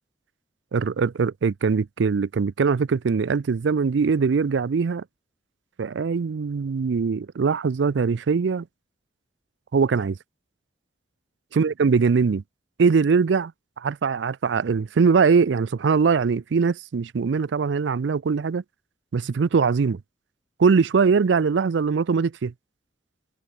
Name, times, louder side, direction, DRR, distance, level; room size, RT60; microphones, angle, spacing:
voice 1, 0.7-5.0 5.8-8.7 9.7-10.2 11.5-12.4 12.8-13.5 13.8-18.6 19.1-20.0 20.6-22.5, right 5 dB, 70° right, 0.4 m, -21 dB
head